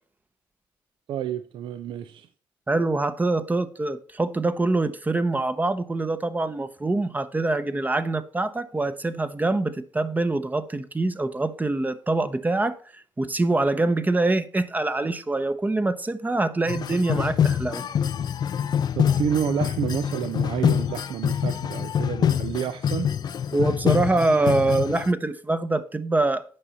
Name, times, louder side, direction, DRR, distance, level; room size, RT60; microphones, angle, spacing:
voice 1, 1.1-2.3 19.0-23.1, right 9 dB, 75° right, 0.5 m, -29 dB
voice 2, 2.7-12.8 13.2-17.8 23.5-26.4, right 2 dB, 20° right, 0.7 m, -24 dB
sound 1, 16.7-25.1, left 8 dB, 55° left, 0.4 m, -25 dB
8.7 x 5.5 x 4.1 m
cardioid pair, 75°, 9 cm